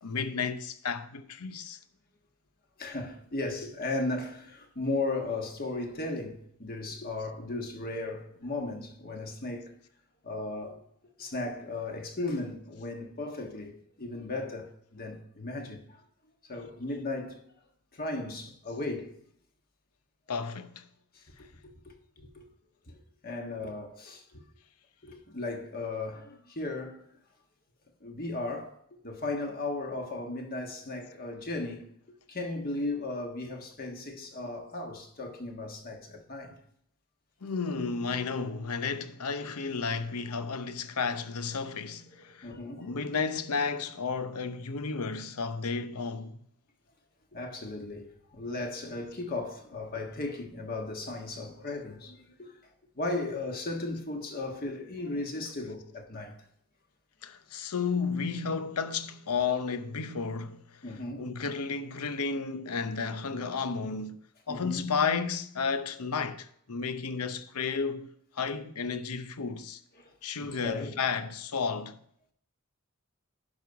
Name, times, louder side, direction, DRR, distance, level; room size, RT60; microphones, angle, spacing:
voice 1, 0.0-1.8 20.3-20.8 37.4-46.4 57.2-64.2 64.5-69.8 70.2-72.0, left 5 dB, 85° left, 0.7 m, -32 dB
voice 2, 2.8-9.7 10.2-10.8 11.2-16.0 16.4-17.4 17.9-19.1 21.1-21.2 21.6-22.5 22.9-23.0 23.2-24.4 25.0-27.0 28.0-28.7 29.0-31.9 32.3-36.5 42.4-43.1 47.3-52.6 52.9-56.3 60.8-61.3 64.5-64.8 70.0-70.1 70.4-70.9, left 2 dB, 45° left, 1.5 m, -36 dB
10.5 x 5.5 x 4.7 m
head